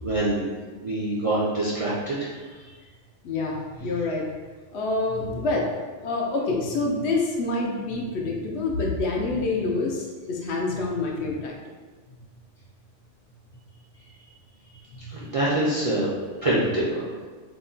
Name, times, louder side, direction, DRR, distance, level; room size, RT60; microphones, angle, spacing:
voice 1, 0.0-0.5 0.8-2.4 15.1-16.1 16.4-17.1, right 1 dB, 50° right, -8 dB, 0.4 m, -25 dB
voice 2, 3.2-4.3 4.7-5.7 6.0-11.5 15.0-15.1, left 3 dB, 75° left, -1 dB, 0.8 m, -27 dB
2.9 x 2.1 x 3.8 m, 1.4 s
omnidirectional pair, 1.2 m